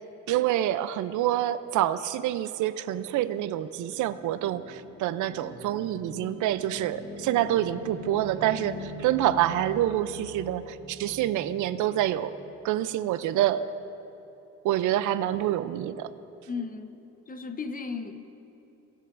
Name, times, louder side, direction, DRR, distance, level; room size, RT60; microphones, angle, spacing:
voice 1, 0.3-12.3 12.6-13.6 14.6-16.1, right 12 dB, 80° right, 13 dB, 0.5 m, -27 dB
sound 1, 3.5-12.8, left 1 dB, 90° left, 1.5 m, -43 dB
voice 2, 16.5-18.3, left 4 dB, 30° left, 8 dB, 0.7 m, -36 dB
19.0 x 6.9 x 2.5 m, 3.0 s
cardioid pair, 90°, 30 cm